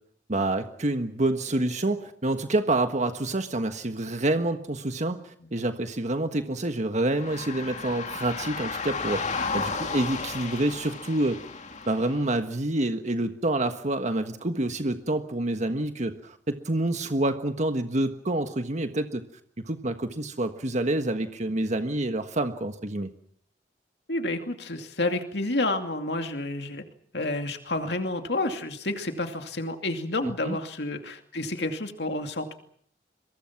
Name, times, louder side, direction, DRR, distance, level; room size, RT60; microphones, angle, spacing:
voice 1, 0.3-9.2 9.5-11.4 11.9-19.2 19.7-23.1 30.2-30.6, right 2 dB, 45° right, 8 dB, 1.5 m, -27 dB
sound 1, 7.1-12.3, left 4 dB, 45° left, 2.8 m, -33 dB
voice 2, 24.1-26.8 27.1-32.5, left 2 dB, 70° left, 6 dB, 2.5 m, -30 dB
28.5 x 23.5 x 6.0 m, 0.63 s
head